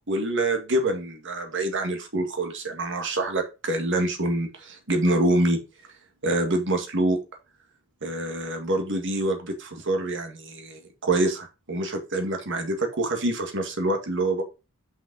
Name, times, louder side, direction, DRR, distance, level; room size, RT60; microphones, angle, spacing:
voice 1, 0.1-5.6 6.2-7.2 8.0-14.4, right 1 dB, 55° right, 5 dB, 1.9 m, -26 dB
6.2 x 5.6 x 5.4 m, 0.29 s
head